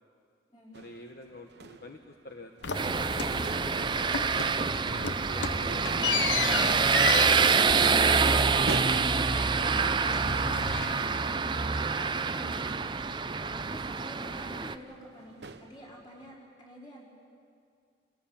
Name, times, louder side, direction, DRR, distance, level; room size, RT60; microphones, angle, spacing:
voice 1, 0.7-4.1 4.6-6.2 13.4-13.8, left 2 dB, 55° left, 4 dB, 1.0 m, -49 dB
sound 1, 0.7-16.3, right 3 dB, 70° right, 1.0 m, -47 dB
sound 2, 2.6-3.8 4.1-4.6 4.9-9.8 10.1-11.4, left 6 dB, 90° left, 0.9 m, -34 dB
sound 3, 2.7-14.7, right 5 dB, 25° right, 0.5 m, -26 dB
voice 2, 7.6-17.0, equal, 25° left, -4 dB, 4.9 m, -49 dB
26.5 x 17.0 x 7.3 m, 2.3 s
head